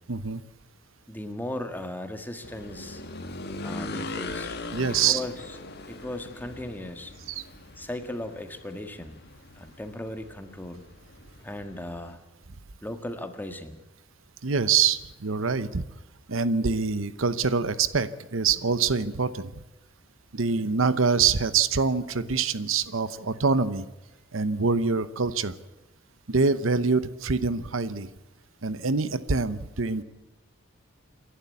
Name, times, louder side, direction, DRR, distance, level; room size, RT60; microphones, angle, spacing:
voice 1, 0.1-0.4 4.7-5.2 7.3-7.4 14.4-15.8 16.3-19.5 20.3-23.9 24.3-25.5 26.3-28.1 28.6-30.0, right 5 dB, 80° right, 14 dB, 0.9 m, -25 dB
voice 2, 1.1-3.0 3.6-5.6 5.9-7.1 7.8-9.2 9.6-10.8 11.4-12.2 12.8-13.8, left 1 dB, 10° left, 7 dB, 1.7 m, -37 dB
sound 1, 2.4-12.2, left 2 dB, 55° left, 1.7 m, -40 dB
28.0 x 11.5 x 8.4 m, 1.0 s
head